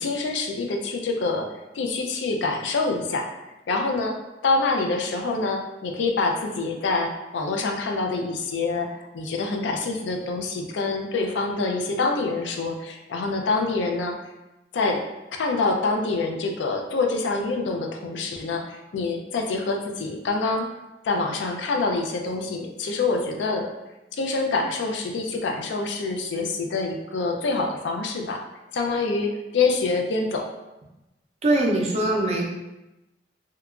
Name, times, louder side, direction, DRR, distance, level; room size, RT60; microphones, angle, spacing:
voice 1, 0.0-1.5 1.7-3.3 3.7-4.1 4.4-14.2 14.7-15.1 15.3-20.7 21.0-23.7 24.1-28.4 28.7-30.5, left 3 dB, 80° left, 3 dB, 0.4 m, -26 dB
voice 2, 31.4-32.5, right 1 dB, 35° right, -1 dB, 0.5 m, -22 dB
2.8 x 2.2 x 2.4 m, 0.98 s
head